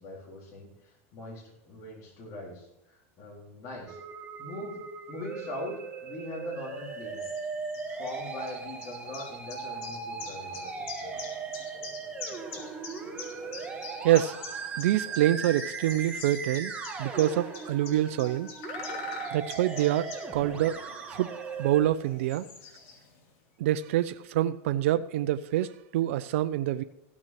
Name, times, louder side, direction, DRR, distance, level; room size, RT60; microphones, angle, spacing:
voice 1, 0.0-4.0 4.4-4.8 5.1-7.3 7.9-11.2, left 1 dB, 45° left, -3 dB, 3.8 m, -41 dB
Musical instrument, 3.9-21.8, right 5 dB, 15° right, 2.1 m, -38 dB
sound 1, 6.8-23.3, left 5 dB, 60° left, 2.6 m, -45 dB
voice 2, 14.0-14.4 14.8-16.7 17.0-18.5 19.3-20.8 21.1-21.3 21.6-22.5 23.6-26.8, right 13 dB, 75° right, 11 dB, 0.5 m, -26 dB
15.5 x 6.1 x 5.9 m, 0.90 s
supercardioid pair, 115°, 7 cm